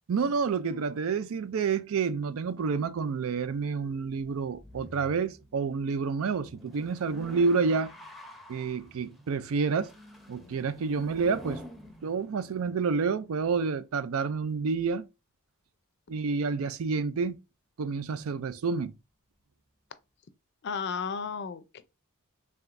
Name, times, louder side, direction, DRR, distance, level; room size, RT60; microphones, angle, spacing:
voice 1, 0.1-7.9 8.5-9.9 10.3-11.6 12.0-15.0 16.1-17.4 17.8-18.9, right 5 dB, 65° right, 0.4 m, -29 dB
sound 1, 3.4-13.0, equal, ahead, 0.6 m, -48 dB
voice 2, 20.6-21.8, left 6 dB, 55° left, 0.5 m, -33 dB
4.8 x 3.4 x 2.5 m
head